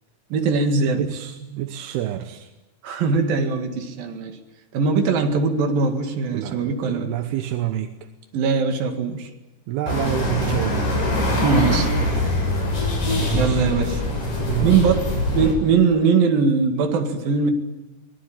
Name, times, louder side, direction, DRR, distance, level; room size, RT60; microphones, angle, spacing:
voice 1, 0.3-1.1 2.8-4.4 4.7-7.1 8.3-9.3 11.4-11.9 13.3-14.0 14.6-17.5, right 5 dB, 65° right, 5 dB, 3.8 m, -21 dB
voice 2, 0.9-2.5 6.3-7.9 9.7-11.0 13.1-13.8 14.4-14.8, right 12 dB, 80° right, 8 dB, 3.0 m, -28 dB
sound 1, 9.9-15.5, left 1 dB, 55° left, 8.6 m, -23 dB
24.5 x 19.0 x 8.8 m, 1.1 s
omnidirectional pair, 4.6 m